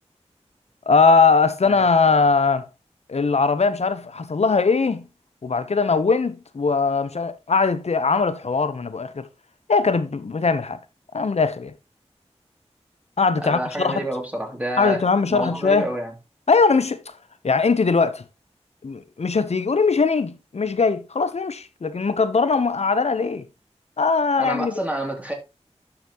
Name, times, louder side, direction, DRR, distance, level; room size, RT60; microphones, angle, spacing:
voice 1, 0.9-2.6 3.1-5.0 5.4-9.3 9.7-10.8 11.1-11.7 13.2-14.0 14.8-15.9 16.5-17.0 17.4-18.2 18.8-23.5 24.0-24.7, left 4 dB, 70° left, 0.9 m, -20 dB
voice 2, 13.4-15.0 15.3-16.1 24.4-25.3, right 1 dB, 10° right, 2.8 m, -28 dB
11.5 x 5.9 x 3.0 m
wide cardioid pair, 55°, 11 cm